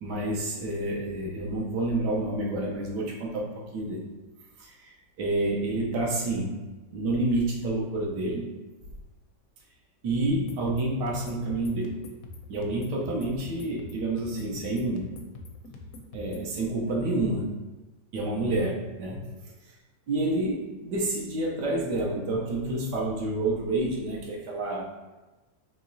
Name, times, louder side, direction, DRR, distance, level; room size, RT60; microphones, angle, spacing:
voice 1, 0.0-3.5 3.7-4.0 5.2-6.5 6.9-8.5 10.0-12.0 12.5-15.1 16.1-17.5 18.1-19.2 20.1-24.8, right 2 dB, 75° right, -2 dB, 1.3 m, -28 dB
sound 1, 10.3-16.5, left 3 dB, 70° left, 0.9 m, -44 dB
4.8 x 3.1 x 2.6 m, 1.2 s
omnidirectional pair, 1.9 m